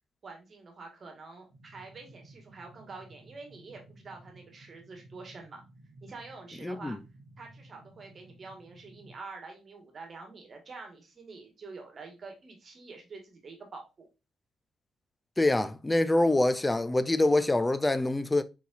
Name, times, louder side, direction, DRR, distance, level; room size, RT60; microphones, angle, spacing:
voice 1, 0.2-5.6 6.0-7.0 7.4-14.1, right 4 dB, 45° right, 1.5 m, -47 dB
sound 1, 1.5-9.1, right 1 dB, 80° right, 1.0 m, -55 dB
voice 2, 6.6-7.0 15.4-18.4, left 2 dB, 15° left, 0.4 m, -25 dB
4.1 x 4.1 x 2.4 m
cardioid pair, 90°, 0 cm